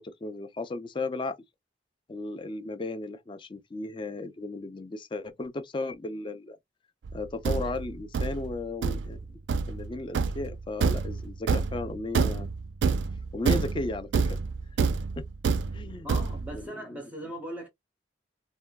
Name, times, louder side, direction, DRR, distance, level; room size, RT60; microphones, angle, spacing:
voice 1, 0.0-1.4 2.1-6.6 7.1-12.5 13.3-14.4 15.2-15.3 15.7-16.1 16.5-17.0, left 2 dB, 25° left, 0.4 m, -35 dB
Thump thud, 7.0-16.6, right 5 dB, 75° right, 0.3 m, -28 dB
voice 2, 16.0-17.7, equal, 10° right, 0.7 m, -39 dB
3.6 x 2.2 x 2.2 m
head